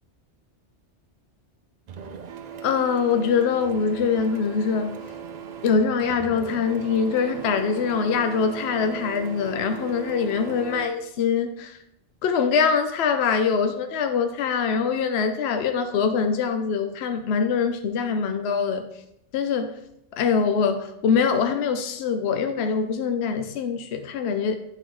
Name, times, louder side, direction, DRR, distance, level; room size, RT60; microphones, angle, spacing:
Printer, 1.9-10.9, right 7 dB, 55° right, 0.4 m, -38 dB
voice 1, 2.6-5.0 5.6-11.8 12.2-18.9 19.3-19.8 20.2-24.6, left 6 dB, 70° left, 7 dB, 0.8 m, -23 dB
11.5 x 3.9 x 3.1 m, 0.79 s
omnidirectional pair, 1.2 m